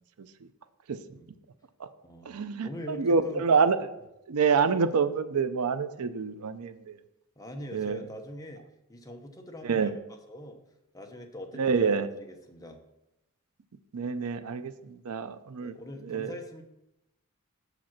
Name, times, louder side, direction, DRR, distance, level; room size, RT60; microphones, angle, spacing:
voice 1, 0.2-0.5 0.9-1.0 1.8-1.9 2.3-3.8 4.3-7.0 7.7-8.0 9.6-9.9 11.5-12.1 13.9-15.7 16.0-16.4, right 5 dB, 85° right, 12 dB, 0.5 m, -27 dB
voice 2, 2.0-2.4 2.6-3.5 7.4-8.6 8.9-9.9 10.3-10.6 10.9-12.8 15.6-16.6, left 1 dB, 15° left, 3 dB, 0.8 m, -43 dB
7.2 x 5.0 x 5.8 m, 0.89 s
head